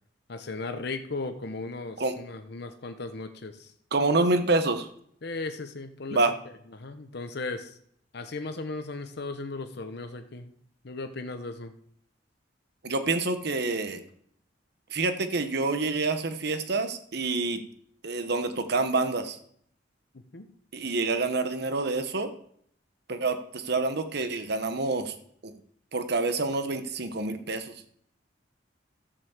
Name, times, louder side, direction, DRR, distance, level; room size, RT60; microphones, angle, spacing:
voice 1, 0.3-3.7 5.2-6.2 6.7-7.8 8.1-10.5 10.8-11.7 20.3-20.5, left 3 dB, 60° left, 8 dB, 0.9 m, -36 dB
voice 2, 3.9-4.9 6.1-6.3 12.8-14.0 14.9-17.6 18.0-19.4 20.7-22.3 23.1-25.1 25.4-25.5 25.9-27.8, right 3 dB, 60° right, 9 dB, 1.0 m, -27 dB
12.5 x 5.5 x 7.2 m, 0.66 s
head